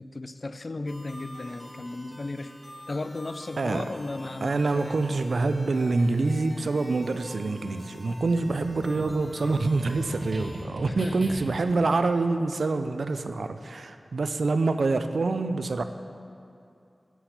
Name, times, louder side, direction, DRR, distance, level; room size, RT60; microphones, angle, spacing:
voice 1, 0.0-2.5 2.9-5.0 10.9-11.4, left 2 dB, 50° left, 11 dB, 0.3 m, -35 dB
sound 1, 0.9-10.7, equal, 20° left, 1.2 m, -47 dB
voice 2, 4.4-15.8, right 3 dB, 75° right, 9 dB, 0.4 m, -26 dB
sound 2, 8.1-11.7, right 1 dB, 55° right, 1.2 m, -39 dB
8.0 x 6.0 x 5.7 m, 2.5 s
wide cardioid pair, 75°, 0 cm